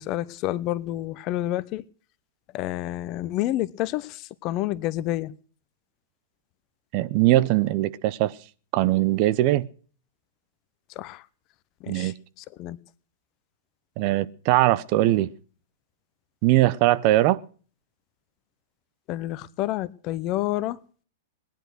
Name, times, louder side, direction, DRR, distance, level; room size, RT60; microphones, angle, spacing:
voice 1, 0.0-1.8 2.5-5.3 11.0-11.2 11.8-12.8 19.1-20.8, left 15 dB, 40° left, 0.8 m, -29 dB
voice 2, 6.9-8.3 8.7-9.7 11.9-12.1 14.0-15.3 16.4-17.4, right 16 dB, 45° right, 0.7 m, -21 dB
19.0 x 10.5 x 6.3 m
figure-of-eight pair, 100°, 0 cm